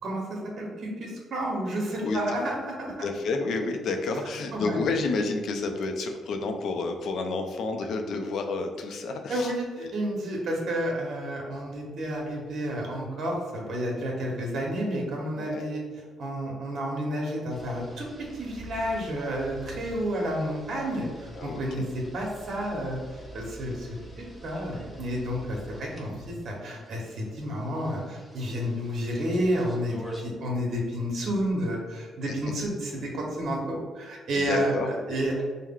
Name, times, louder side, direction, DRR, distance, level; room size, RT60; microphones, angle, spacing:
voice 1, 0.0-2.9 4.5-4.8 9.3-15.8 16.2-35.4, equal, 60° right, -1 dB, 1.0 m, -31 dB
voice 2, 2.0-2.4 3.0-9.5 9.8-9.9 15.4-15.7 21.3-21.9 34.3-35.0, left 3 dB, 70° left, 5 dB, 0.5 m, -30 dB
sound 1, 17.5-30.2, right 2 dB, 10° left, 0.9 m, -46 dB
4.7 x 2.2 x 3.7 m, 1.5 s
cardioid pair, 90°, 0 cm